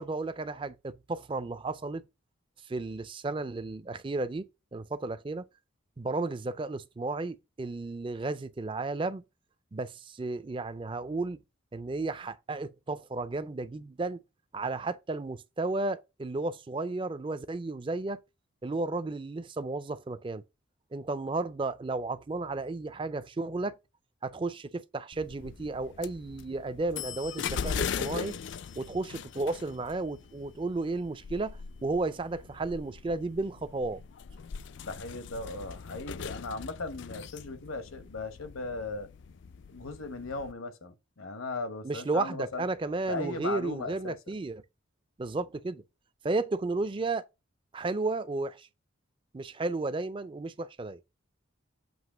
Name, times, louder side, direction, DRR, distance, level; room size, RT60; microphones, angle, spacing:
voice 1, 0.0-2.0 2.7-5.4 6.0-9.2 9.7-11.4 11.7-14.2 14.5-18.2 18.6-20.4 20.9-23.7 24.2-28.4 28.8-34.0 41.8-44.6 45.2-45.8 46.2-47.3 47.7-48.7 49.3-51.0, right 3 dB, 25° right, 0.4 m, -33 dB
sound 1, 25.1-40.5, left 6 dB, 55° left, 0.3 m, -40 dB
voice 2, 34.8-39.1 39.7-42.6 43.1-44.4, left 3 dB, 80° left, 1.1 m, -37 dB
7.8 x 2.9 x 5.0 m
head